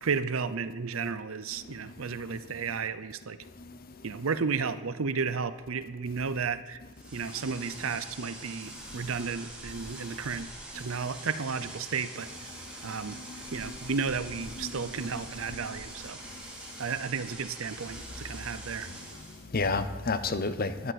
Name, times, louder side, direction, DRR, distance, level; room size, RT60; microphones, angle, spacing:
voice 1, 0.0-3.4 4.0-6.8 7.1-12.3 12.8-13.2 13.5-16.2 16.8-18.9, right 5 dB, 70° right, 0.6 m, -33 dB
sound 1, 6.9-19.5, right 1 dB, 5° right, 3.0 m, -44 dB
voice 2, 12.9-14.0 14.4-14.8 15.6-15.8 18.9-19.0 19.3-20.9, left 3 dB, 45° left, 0.7 m, -33 dB
17.0 x 11.0 x 4.2 m
head